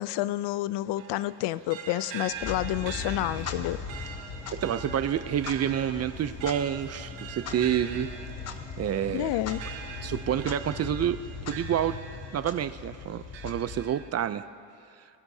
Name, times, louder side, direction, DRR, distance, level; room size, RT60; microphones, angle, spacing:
voice 1, 0.0-3.8 9.1-9.6, left 15 dB, 70° left, 17 dB, 0.5 m, -29 dB
sound 1, 1.0-12.6 13.1-14.1, right 7 dB, 85° right, 1.5 m, -43 dB
Clock, 2.3-14.2, left 5 dB, 35° left, 0.9 m, -39 dB
sound 2, 2.6-11.6, equal, 15° left, 2.6 m, -52 dB
voice 2, 4.5-8.1 8.8-9.4 10.0-11.2 11.5-12.0 12.3-14.5, right 10 dB, 35° right, 13 dB, 0.4 m, -28 dB
30.0 x 16.5 x 2.7 m, 2.4 s
cardioid pair, 130°, 43 cm